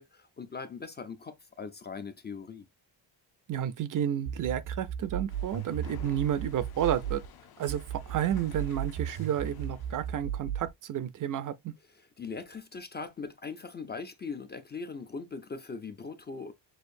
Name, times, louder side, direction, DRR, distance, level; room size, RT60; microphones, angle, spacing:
voice 1, 0.0-2.7 11.9-16.5, left 4 dB, 25° left, 0.4 m, -40 dB
voice 2, 3.5-7.2 7.6-11.7, right 10 dB, 50° right, 0.5 m, -31 dB
sound 1, 4.3-7.3 7.7-10.7, right 9 dB, 80° right, 0.8 m, -36 dB
sound 2, 5.3-10.2, left 8 dB, 55° left, 0.8 m, -52 dB
6.4 x 2.5 x 2.6 m
cardioid pair, 155°, 43 cm